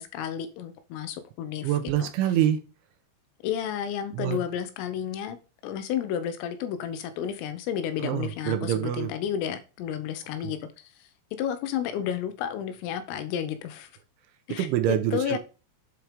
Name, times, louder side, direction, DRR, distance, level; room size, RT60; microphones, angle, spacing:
voice 1, 0.0-1.7 2.0-2.1 3.4-5.4 5.6-10.6 11.4-13.9 14.5-14.7 15.1-15.4, left 9 dB, 85° left, 3.8 m, -31 dB
voice 2, 1.6-2.6 4.1-4.4 8.0-9.1 10.4-10.5 14.5-15.4, right 11 dB, 80° right, 3.3 m, -26 dB
8.4 x 4.7 x 5.1 m
omnidirectional pair, 5.7 m